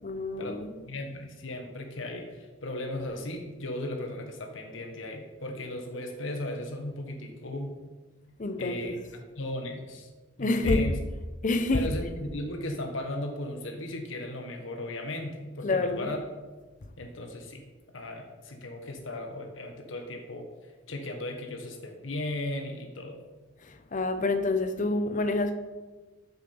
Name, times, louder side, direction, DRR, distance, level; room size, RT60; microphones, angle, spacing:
voice 1, 0.0-0.8 8.4-8.9 10.4-10.9 11.4-11.9 15.6-16.1 23.6-25.6, left 2 dB, 40° left, 0.7 m, -27 dB
voice 2, 0.8-7.9 8.6-9.0 9.4-10.1 10.4-10.9 11.7-16.2 17.0-17.6 17.9-20.5 20.9-23.2, left 1 dB, 70° left, 1.3 m, -36 dB
7.3 x 6.9 x 5.5 m
head